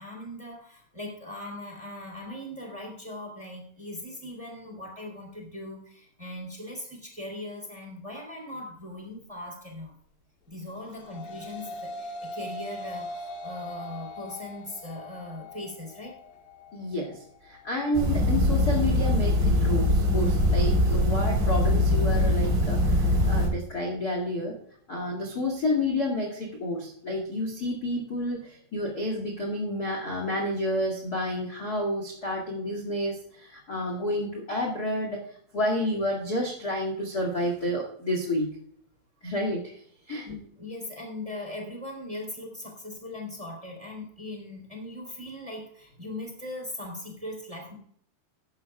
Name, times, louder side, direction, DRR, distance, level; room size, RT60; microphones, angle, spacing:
voice 1, 0.0-9.9 10.5-16.2 40.2-47.7, left 1 dB, 10° right, 1 dB, 2.7 m, -39 dB
sound 1, 10.7-19.9, left 1 dB, 85° left, 4.1 m, -42 dB
voice 2, 16.7-24.5 24.9-35.2 35.5-38.5 39.2-39.7 40.1-40.3, left 1 dB, 35° left, 1 dB, 1.8 m, -30 dB
sound 2, 17.9-23.5, left 1 dB, 55° right, 5.3 m, -22 dB
15.0 x 11.5 x 2.3 m, 0.62 s
omnidirectional pair, 4.9 m